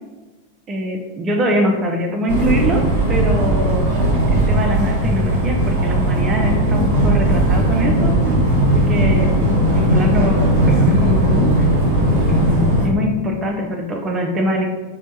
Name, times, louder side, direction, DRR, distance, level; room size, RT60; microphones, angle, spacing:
voice 1, 0.7-2.8 3.1-3.9 4.3-8.2 8.6-9.3 9.7-11.7 12.3-14.7, equal, 25° right, 2 dB, 0.4 m, -23 dB
sound 1, 2.3-12.9, right 1 dB, 45° right, 0.9 m, -17 dB
4.2 x 2.1 x 2.8 m, 1.2 s
figure-of-eight pair, 90°, 0 cm